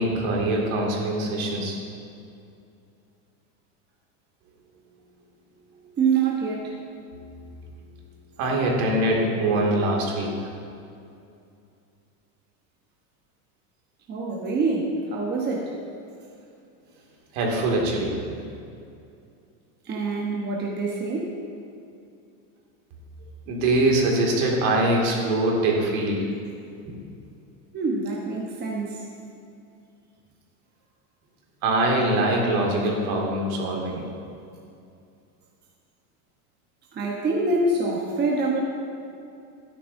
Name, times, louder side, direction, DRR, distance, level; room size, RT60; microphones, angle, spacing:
voice 1, 0.0-1.8 8.4-10.3 17.3-18.2 23.5-26.2 26.9-27.0 31.6-34.0, right 1 dB, 65° right, -1 dB, 2.4 m, -23 dB
voice 2, 6.0-6.7 14.1-15.8 19.8-21.4 27.7-29.1 36.9-38.6, right 3 dB, 20° right, -2 dB, 1.1 m, -25 dB
12.5 x 10.0 x 2.7 m, 2.5 s
supercardioid pair, 140°, 46 cm